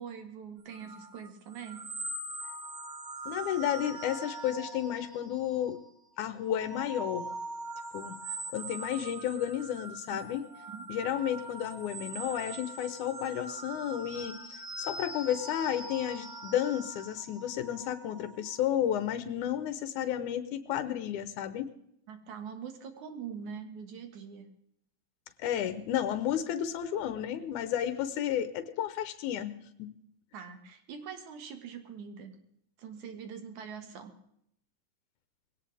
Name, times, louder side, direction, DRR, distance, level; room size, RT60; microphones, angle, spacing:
voice 1, 0.0-1.9 10.1-10.2 10.7-10.8 22.1-24.5 30.3-32.3 32.8-34.1, right 7 dB, 75° right, 7 dB, 3.1 m, -43 dB
sound 1, 0.7-5.9 6.3-18.6, right 2 dB, 50° right, 6.4 m, -42 dB
voice 2, 3.3-5.8 6.2-7.3 7.9-8.2 8.5-10.4 10.9-21.7 25.4-29.9, left 10 dB, 90° left, 11 dB, 2.4 m, -32 dB
21.0 x 17.5 x 3.4 m, 0.72 s
omnidirectional pair, 3.4 m